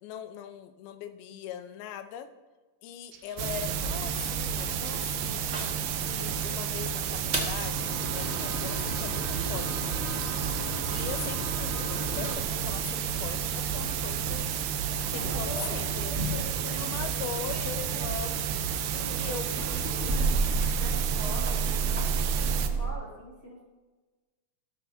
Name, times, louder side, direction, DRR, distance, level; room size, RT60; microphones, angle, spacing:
voice 1, 0.0-2.3 2.8-5.5 6.0-9.9 10.8-14.5 14.9-16.1 16.7-18.4 19.2-19.9, left 9 dB, 80° left, 9 dB, 2.6 m, -41 dB
sound 1, 3.1-10.7, right 8 dB, 70° right, 2.3 m, -50 dB
sound 2, 3.4-22.7, right 8 dB, 90° right, 2.8 m, -31 dB
sound 3, 3.7-6.6 7.1-13.8 14.6-17.2 17.5-22.9, right 3 dB, 35° right, 1.0 m, -33 dB
voice 2, 15.1-18.5 18.9-20.4 20.7-23.6, equal, 25° left, -4 dB, 2.8 m, -43 dB
15.5 x 13.0 x 2.7 m, 1.3 s
omnidirectional pair, 4.4 m